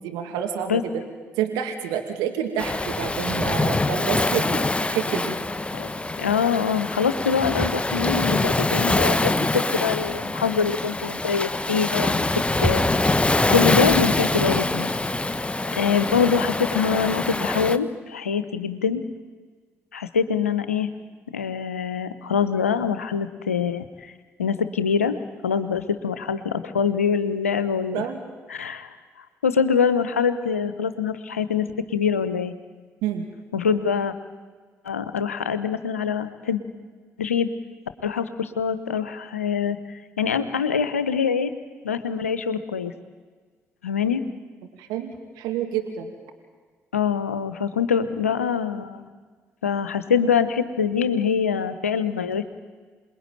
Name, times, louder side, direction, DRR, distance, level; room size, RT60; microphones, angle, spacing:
voice 1, 0.0-1.0 1.4-5.4 27.9-28.2 33.0-33.3 44.8-46.1, right 9 dB, 70° right, 4 dB, 2.5 m, -28 dB
Waves surf, 2.6-17.8, left 2 dB, 15° left, 1.4 m, -24 dB
voice 2, 6.2-12.3 12.6-12.9 13.5-14.9 15.2-15.3 15.8-19.0 19.9-20.9 21.3-24.1 24.4-25.2 25.4-28.0 28.5-28.9 29.4-31.7 31.9-32.5 33.5-34.1 34.8-36.6 37.2-37.5 38.0-39.8 40.2-41.5 41.8-42.9 43.8-44.2 46.9-49.1 49.6-52.5, left 6 dB, 90° left, 12 dB, 1.0 m, -24 dB
27.5 x 21.0 x 9.1 m, 1.5 s
figure-of-eight pair, 45°, 7 cm